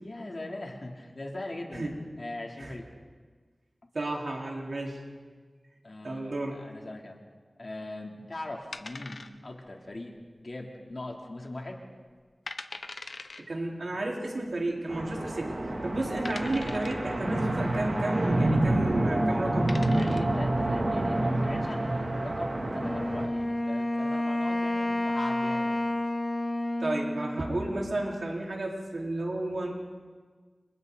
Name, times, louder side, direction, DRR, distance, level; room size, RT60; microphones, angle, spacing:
voice 1, 0.0-1.9 2.2-2.9 5.8-7.2 7.6-11.8 19.9-25.8, left 2 dB, 55° left, 0 dB, 3.4 m, -41 dB
voice 2, 3.9-5.0 6.0-6.6 13.5-15.5 15.8-19.7 26.8-29.7, right 2 dB, 70° right, -2 dB, 4.5 m, -32 dB
sound 1, 8.7-9.7 9.9-10.0 10.7-11.1 11.4-11.5 12.1-12.2 12.5-13.4 14.5-14.6 15.3-15.4 16.3-17.1 18.9-19.1 19.5-20.4, left 3 dB, 75° left, 1.0 m, -41 dB
sound 2, 14.9-23.3, right 1 dB, 50° right, 2.9 m, -28 dB
Wind instrument woodwind instrument, 22.8-28.2, left 1 dB, 30° left, 1.2 m, -30 dB
30.0 x 26.0 x 4.2 m, 1.5 s
wide cardioid pair, 65°, 0 cm